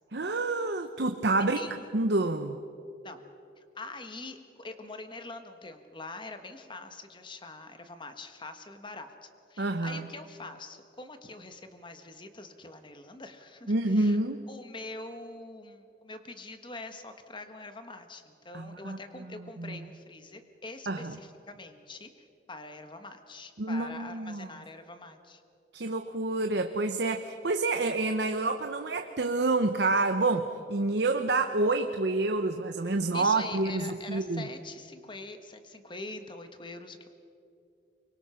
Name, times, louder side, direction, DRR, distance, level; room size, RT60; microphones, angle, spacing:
voice 1, 0.1-1.6 1.9-2.6 9.6-10.1 13.7-14.5 18.5-19.0 19.6-19.9 20.9-21.1 23.6-24.5 25.7-34.5, right 2 dB, 65° right, 7 dB, 0.9 m, -28 dB
voice 2, 3.6-14.2 14.5-25.4 33.1-37.1, left 3 dB, 25° left, 8 dB, 1.4 m, -44 dB
24.5 x 23.0 x 5.8 m, 2.6 s
head